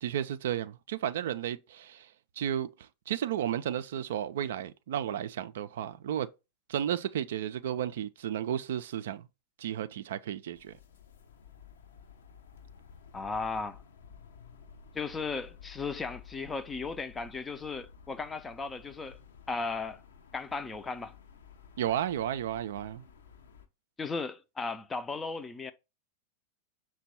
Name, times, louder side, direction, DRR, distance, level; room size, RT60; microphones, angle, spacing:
voice 1, 0.0-2.1 2.4-2.7 3.1-6.3 6.7-9.2 9.6-10.7 21.8-23.0, right 10 dB, 60° right, 0.3 m, -33 dB
sound 1, 10.6-23.7, left 7 dB, 60° left, 0.6 m, -53 dB
voice 2, 13.1-13.8 14.9-19.2 19.5-20.0 20.3-21.1 24.0-25.7, left 4 dB, 15° left, 0.4 m, -36 dB
5.8 x 2.2 x 4.1 m
figure-of-eight pair, 90°, 0 cm